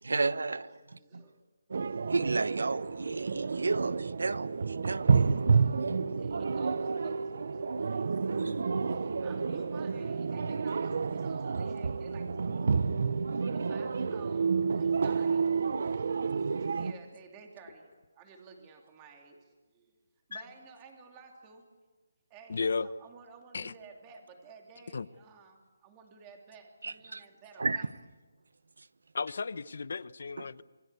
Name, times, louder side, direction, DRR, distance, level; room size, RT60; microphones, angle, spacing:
voice 1, 0.0-1.2 2.1-5.4 7.8-8.6 26.8-27.2 27.6-27.9 30.4-30.5, right 3 dB, 85° right, 1.2 m, -33 dB
voice 2, 0.9-1.4 6.1-12.8 13.4-19.9 20.3-21.7 22.3-27.9, right 5 dB, 15° right, 2.8 m, -54 dB
sound 1, 1.7-16.9, right 5 dB, 50° right, 0.8 m, -30 dB
voice 3, 22.5-22.9 23.5-23.7 24.9-25.1 29.1-30.6, left 4 dB, 55° left, 0.9 m, -34 dB
27.5 x 21.5 x 8.3 m
hypercardioid pair, 175°, 0 cm